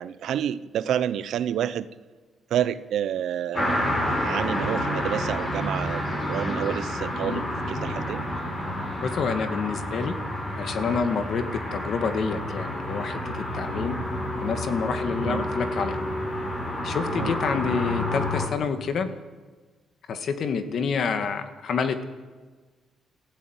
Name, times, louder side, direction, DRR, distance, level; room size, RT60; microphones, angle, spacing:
voice 1, 0.0-1.9 2.5-3.9 4.2-8.2 15.2-15.5 17.1-17.3, right 10 dB, 70° right, 14 dB, 0.9 m, -29 dB
sound 1, 3.5-18.5, left 1 dB, 30° left, 7.4 m, -29 dB
voice 2, 9.0-10.1 10.6-11.5 11.7-14.0 14.4-16.0 16.8-19.1 20.1-22.0, left 5 dB, 55° left, 8 dB, 2.1 m, -28 dB
29.0 x 14.5 x 9.2 m, 1.4 s
cardioid pair, 130°, 0 cm